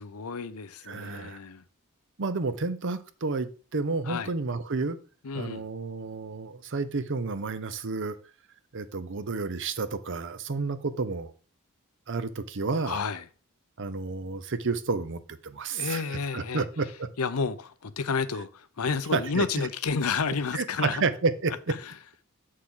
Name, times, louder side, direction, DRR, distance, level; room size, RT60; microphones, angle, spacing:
voice 1, 0.0-1.6 4.1-4.3 5.2-5.6 12.8-13.2 15.7-16.6 17.2-21.0 21.8-21.9, left 5 dB, 85° left, 0.7 m, -31 dB
voice 2, 0.9-1.4 2.2-5.0 5.3-8.2 8.7-11.3 12.1-13.0 13.8-16.0 16.3-17.1 19.1-19.4 20.5-21.7, right 4 dB, 60° right, 0.7 m, -30 dB
7.5 x 6.5 x 3.8 m
head